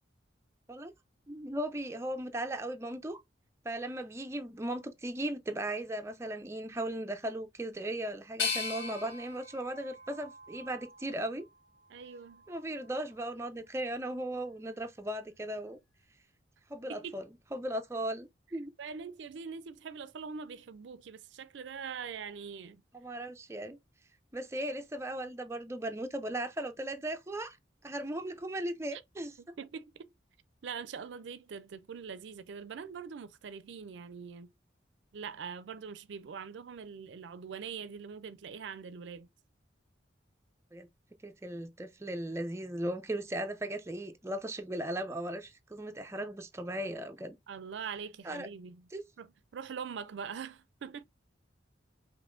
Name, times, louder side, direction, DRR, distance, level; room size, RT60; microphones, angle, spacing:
voice 1, 1.3-3.2 3.6-11.5 12.5-15.8 16.7-18.7 22.9-23.8 24.3-27.6 27.8-29.3 40.7-40.9 41.2-47.4 48.2-48.5 48.9-49.0, right 1 dB, 15° right, 0.4 m, -37 dB
sound 1, 8.4-11.3 11.9-12.7, left 5 dB, 80° left, 1.3 m, -39 dB
voice 2, 11.9-12.4 16.9-17.2 18.8-22.8 28.9-29.0 29.6-30.1 30.6-34.5 35.1-39.3 47.5-48.9 49.2-51.0, right 6 dB, 70° right, 0.4 m, -43 dB
5.3 x 3.0 x 2.5 m
head